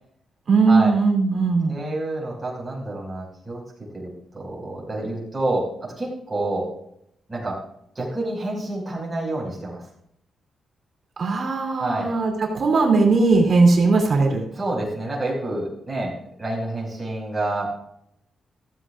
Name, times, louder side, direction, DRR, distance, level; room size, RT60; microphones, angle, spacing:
voice 1, 0.5-1.8 11.2-14.4, right 3 dB, 40° right, 0 dB, 2.8 m, -18 dB
voice 2, 1.6-3.6 3.9-4.1 4.3-6.7 7.3-7.6 8.0-9.8 11.8-12.1 14.5-17.7, right 2 dB, 15° right, -4 dB, 5.7 m, -28 dB
15.0 x 15.0 x 2.5 m, 0.73 s
wide cardioid pair, 170°, 0 cm